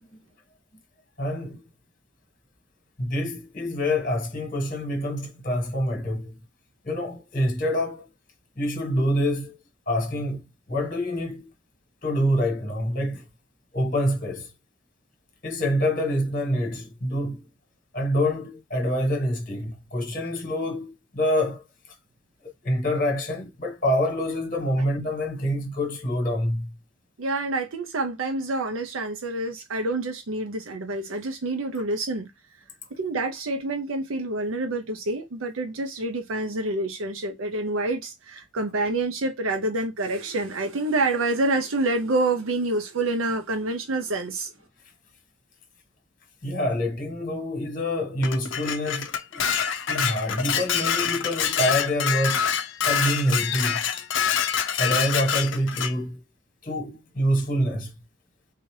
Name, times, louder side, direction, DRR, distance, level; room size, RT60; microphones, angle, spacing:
voice 1, 1.2-1.6 3.0-6.3 6.8-8.0 8.6-9.6 9.9-10.4 10.7-11.5 12.0-13.2 13.7-14.5 15.4-17.4 17.9-21.6 22.6-26.7 46.4-49.5 49.9-52.4 52.8-53.8 54.8-56.2 56.6-57.9, equal, 40° left, 1.4 m, -26 dB
voice 2, 27.2-32.3 32.9-44.5, right 2 dB, 80° right, 0.6 m, -27 dB
Dishes pots and pans, 48.2-55.9, left 8 dB, 65° left, 0.5 m, -26 dB
3.9 x 2.7 x 3.2 m
head